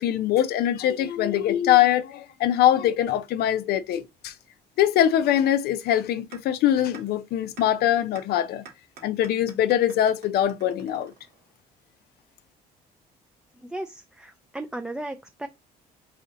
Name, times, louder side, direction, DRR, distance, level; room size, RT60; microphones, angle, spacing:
voice 1, 0.0-4.3 4.8-8.7 9.0-11.1, left 11 dB, 70° left, 0.5 m, -23 dB
sound 1, 6.3-6.4 6.9-7.0 7.6-7.7 8.1-8.2 8.6-11.6, right 5 dB, 70° right, 1.5 m, -46 dB
voice 2, 13.7-15.5, right 1 dB, 5° right, 0.3 m, -35 dB
3.1 x 2.6 x 3.9 m
cardioid pair, 110°, 17 cm